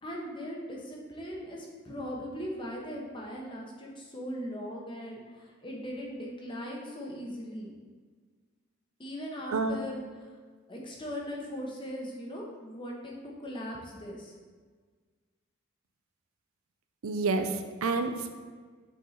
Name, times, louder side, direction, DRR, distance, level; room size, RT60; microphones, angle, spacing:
voice 1, 0.0-7.8 9.0-10.0 10.7-14.3, equal, 25° left, -1 dB, 1.0 m, -39 dB
voice 2, 17.0-18.3, right 3 dB, 85° right, 7 dB, 0.6 m, -29 dB
6.9 x 4.6 x 4.0 m, 1.5 s
head